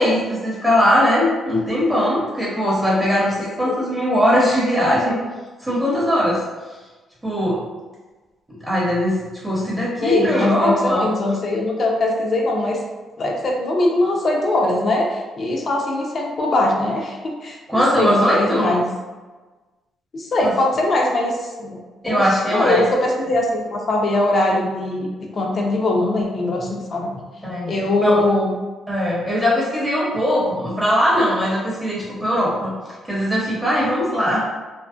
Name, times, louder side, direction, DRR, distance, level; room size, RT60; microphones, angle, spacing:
voice 1, 0.0-5.2 5.6-6.4 7.2-7.6 8.5-11.1 17.7-18.7 20.4-20.5 22.0-22.8 27.4-27.8 28.0-28.2 28.9-32.8 33.1-34.5, equal, 5° right, -7 dB, 0.8 m, -20 dB
voice 2, 10.0-12.8 13.2-17.2 17.4-18.8 20.1-21.8 22.0-22.2 22.5-27.1 27.7-28.5, left 2 dB, 45° left, 0 dB, 0.5 m, -21 dB
2.5 x 2.1 x 2.4 m, 1.3 s
cardioid pair, 90°, 0 cm